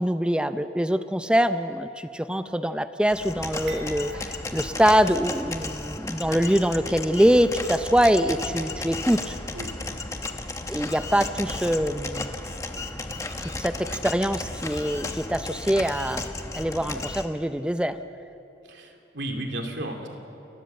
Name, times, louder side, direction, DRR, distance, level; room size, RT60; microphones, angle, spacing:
voice 1, 0.0-9.3 10.7-12.3 13.4-16.2 16.5-18.0, equal, 5° right, 10 dB, 0.6 m, -24 dB
sound 1, 3.1-17.3, left 2 dB, 15° left, 0.9 m, -34 dB
sound 2, 3.7-5.8 6.2-6.3 7.2-7.4, right 1 dB, 55° right, 3.3 m, -44 dB
voice 2, 9.5-10.0 18.6-20.1, right 1 dB, 80° right, 3 dB, 2.7 m, -34 dB
29.0 x 13.5 x 7.8 m, 2.8 s
head